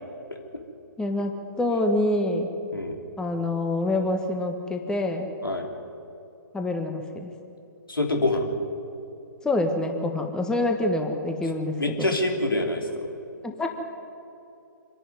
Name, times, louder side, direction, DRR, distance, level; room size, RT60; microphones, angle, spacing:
voice 1, 1.0-2.5 3.2-5.3 6.5-7.3 9.4-12.1 13.4-13.7, left 2 dB, 5° left, 4 dB, 1.4 m, -26 dB
voice 2, 7.9-8.5 11.8-13.1, left 2 dB, 80° left, 2 dB, 3.6 m, -25 dB
26.0 x 11.5 x 9.4 m, 2.8 s
figure-of-eight pair, 125°, 11 cm